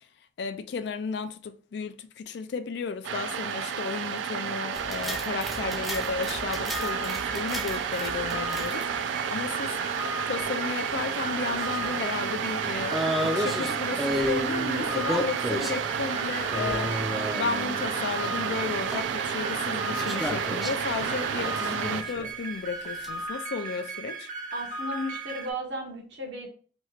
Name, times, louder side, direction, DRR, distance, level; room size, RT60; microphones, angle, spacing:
voice 1, 0.4-9.8 10.3-13.1 13.3-17.0 17.3-24.3, left 5 dB, 65° left, 0.3 m, -33 dB
sound 1, 3.0-22.0, right 7 dB, 90° right, 0.3 m, -31 dB
sound 2, 4.7-9.0 10.9-12.0 12.3-12.4 12.9-15.8 16.5-17.8 18.2-19.0 19.9-22.3 22.8-23.1, equal, ahead, 0.4 m, -33 dB
sound 3, 6.7-25.5, right 3 dB, 45° right, 0.6 m, -37 dB
voice 2, 24.5-26.5, equal, 75° right, 1.0 m, -34 dB
3.0 x 2.3 x 3.2 m
head